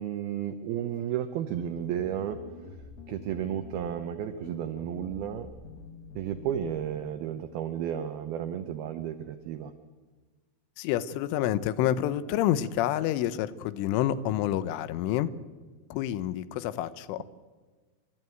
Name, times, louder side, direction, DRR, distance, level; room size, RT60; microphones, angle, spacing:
voice 1, 0.0-2.4 2.7-2.8 3.1-5.5 6.2-9.7, right 10 dB, 85° right, 9 dB, 2.2 m, -33 dB
sound 1, 1.8-7.1, left 5 dB, 55° left, 2.6 m, -47 dB
voice 2, 10.8-15.3 15.9-17.2, left 12 dB, 80° left, 15 dB, 3.2 m, -28 dB
29.5 x 13.0 x 9.2 m, 1.4 s
omnidirectional pair, 5.6 m